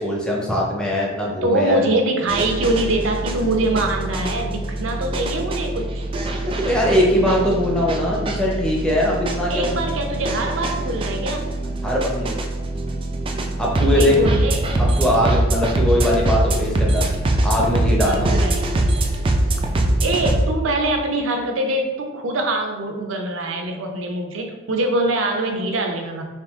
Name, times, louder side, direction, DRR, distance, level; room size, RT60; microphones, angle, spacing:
voice 1, 0.0-1.8 6.6-9.8 11.8-12.3 13.6-14.3 14.8-17.1 17.4-18.3, left 1 dB, 5° left, -3 dB, 0.7 m, -21 dB
voice 2, 1.4-5.9 9.5-11.4 13.9-14.7 18.0-18.7 20.0-26.2, right 2 dB, 70° right, 3 dB, 0.6 m, -23 dB
sound 1, 2.3-20.5, right 1 dB, 25° right, 0.3 m, -23 dB
3.6 x 2.8 x 3.5 m, 1.3 s
head